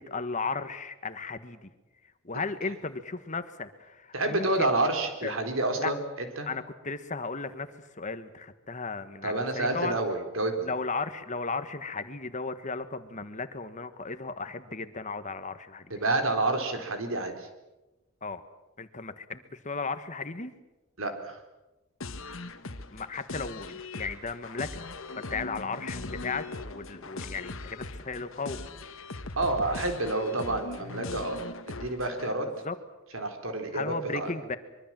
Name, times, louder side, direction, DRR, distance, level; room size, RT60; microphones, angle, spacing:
voice 1, 0.0-1.7 2.2-4.7 5.2-5.3 5.8-5.9 6.4-10.0 10.6-15.9 18.2-18.4 18.8-20.5 22.9-24.9 25.2-28.6 32.4-32.8 33.7-34.6, left 4 dB, 35° left, 10 dB, 1.4 m, -35 dB
voice 2, 4.1-6.0 6.4-6.5 9.2-10.7 15.9-17.5 21.0-21.4 29.4-31.4 31.7-32.5 33.1-34.3, right 2 dB, 65° right, 6 dB, 4.0 m, -29 dB
sound 1, 22.0-32.3, left 3 dB, 60° left, 1.6 m, -40 dB
25.0 x 23.5 x 7.6 m, 1.0 s
head